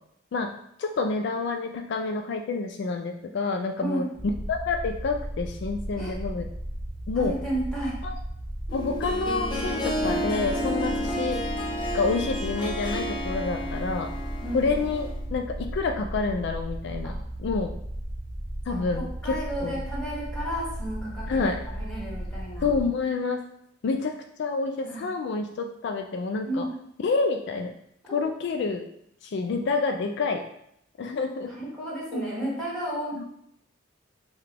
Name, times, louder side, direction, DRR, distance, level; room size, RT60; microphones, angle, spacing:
voice 1, 0.8-6.5 7.1-7.4 8.0-8.2 8.7-11.4 11.9-14.1 14.5-17.1 17.4-17.7 18.7-19.8 21.3-21.6 22.6-23.4 23.8-26.7 27.0-27.7 28.1-28.9 29.2-30.5 31.0-31.6 32.1-32.2 33.2-33.3, left 4 dB, 60° left, 5 dB, 0.3 m, -28 dB
sound 1, 4.1-22.8, right 1 dB, 45° right, 1.0 m, -35 dB
voice 2, 7.1-8.0 14.4-14.8 17.0-17.1 18.7-22.7 24.8-25.0 26.4-26.7 28.1-28.2 31.5-33.2, right 1 dB, 5° left, -6 dB, 1.5 m, -33 dB
Harp, 8.7-15.2, equal, 25° left, 0.7 m, -31 dB
5.6 x 2.3 x 3.4 m, 0.74 s
head